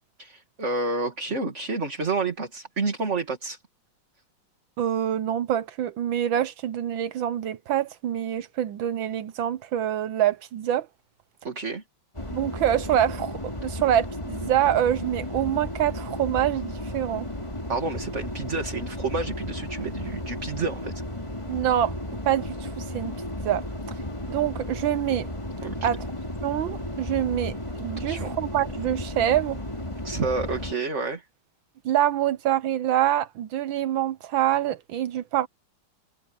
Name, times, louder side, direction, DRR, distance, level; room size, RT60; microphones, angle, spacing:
voice 1, 0.2-3.6 11.4-11.8 17.7-20.9 25.6-25.9 28.0-28.3 30.0-31.2, right 3 dB, 35° right, 2.6 m, -29 dB
voice 2, 4.8-10.9 12.3-17.3 21.5-21.9 22.2-23.1 23.4-23.6 24.3-25.3 25.8-26.1 26.4-29.6 31.8-35.5, right 11 dB, 70° right, 1.4 m, -25 dB
sound 1, 12.1-30.7, left 1 dB, 15° left, 3.3 m, -34 dB
omnidirectional pair, 2.4 m